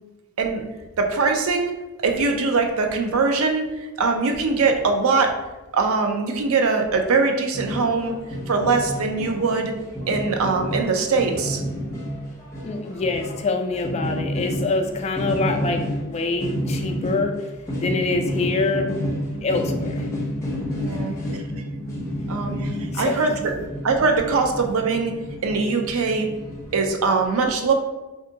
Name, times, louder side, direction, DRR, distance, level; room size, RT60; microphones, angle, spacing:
voice 1, 1.0-1.8 2.0-5.3 5.7-8.1 8.5-9.7 10.1-11.6 19.3-19.4 20.8-21.4 22.3-23.5 23.8-25.1 25.4-26.3 26.7-27.7, right 4 dB, 80° right, 4 dB, 0.5 m, -22 dB
sound 1, 7.5-26.9, equal, 15° left, 0.8 m, -30 dB
voice 2, 12.6-17.3 17.8-18.9 19.4-20.1 22.9-23.2, left 3 dB, 30° left, 4 dB, 0.3 m, -25 dB
2.6 x 2.4 x 3.8 m, 1.1 s
head